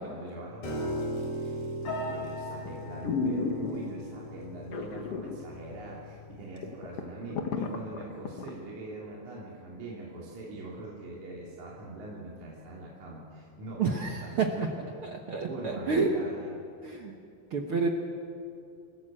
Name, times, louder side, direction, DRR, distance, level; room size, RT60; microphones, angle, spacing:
voice 1, 0.0-14.7 15.4-16.5, right 2 dB, 55° right, -5 dB, 4.2 m, -42 dB
Piano, 0.6-6.8, equal, 80° left, 5.7 m, -37 dB
sound 1, 1.9-2.2 2.7-2.8 3.0-4.1 4.7-5.4 5.7-5.8 6.3-6.4 6.6-8.5 8.9-9.0, left 4 dB, 55° left, 1.9 m, -32 dB
voice 2, 13.8-14.7 15.0-16.1 16.8-17.2 17.5-17.9, right 4 dB, 70° right, 2 dB, 1.3 m, -29 dB
28.0 x 14.5 x 7.6 m, 2.5 s
omnidirectional pair, 4.3 m